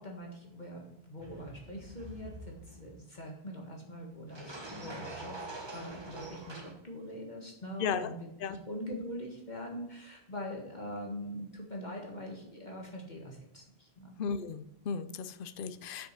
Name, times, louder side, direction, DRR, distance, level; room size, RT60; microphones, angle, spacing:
voice 1, 0.0-5.4 5.7-8.1 8.5-14.1, equal, 45° left, 0 dB, 1.7 m, -43 dB
sound 1, 1.2-2.9 4.3-6.7, right 2 dB, 25° right, 1.2 m, -45 dB
voice 2, 7.8-8.1 8.4-8.6 14.2-16.1, left 6 dB, 60° left, 11 dB, 0.8 m, -35 dB
8.2 x 6.5 x 5.9 m, 0.80 s
omnidirectional pair, 1.1 m